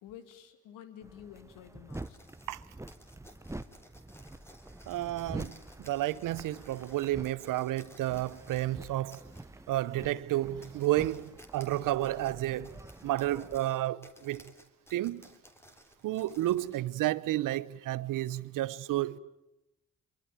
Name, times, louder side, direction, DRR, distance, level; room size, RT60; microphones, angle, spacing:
voice 1, 0.0-2.2, left 10 dB, 85° left, 2.2 m, -50 dB
sound 1, 1.0-13.6, right 2 dB, 10° right, 1.1 m, -47 dB
sound 2, 1.9-8.7 9.1-9.5 10.0-10.1 10.5-16.8, equal, 10° left, 3.6 m, -57 dB
voice 2, 4.9-9.2 9.7-14.4 14.9-15.3 16.0-19.2, right 15 dB, 80° right, 0.9 m, -31 dB
24.0 x 23.0 x 9.2 m
supercardioid pair, 55°, 32 cm